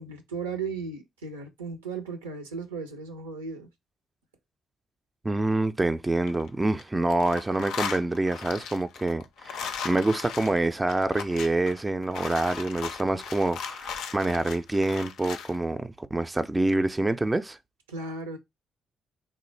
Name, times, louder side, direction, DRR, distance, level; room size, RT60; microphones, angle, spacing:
voice 1, 0.0-3.7 17.9-18.4, right 4 dB, 90° right, 0.5 m, -36 dB
voice 2, 5.2-17.6, right 2 dB, 20° right, 0.4 m, -26 dB
sound 1, 6.1-6.8 7.1-15.5, left 6 dB, 70° left, 0.4 m, -37 dB
3.1 x 2.1 x 3.2 m
hypercardioid pair, 45°, 0 cm